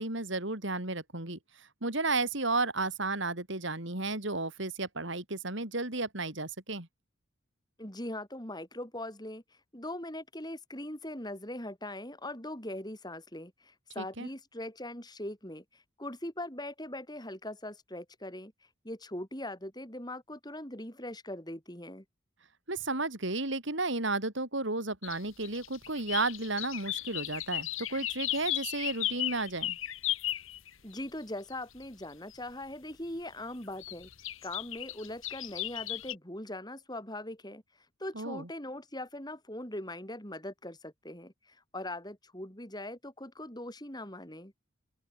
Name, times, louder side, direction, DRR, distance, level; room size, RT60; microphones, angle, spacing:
voice 1, 0.0-6.9 14.0-14.3 22.7-29.8 38.2-38.5, right 3 dB, 60° right, 3.8 m, -33 dB
voice 2, 7.8-9.4 9.7-18.5 18.8-22.0 30.8-34.1 34.4-37.6 38.0-44.5, left 1 dB, 20° left, 6.6 m, -41 dB
sound 1, 25.0-31.0 31.5-31.6 31.8-31.9 32.3-32.4 33.8-36.1, left 14 dB, 75° left, 2.6 m, -35 dB
open air
head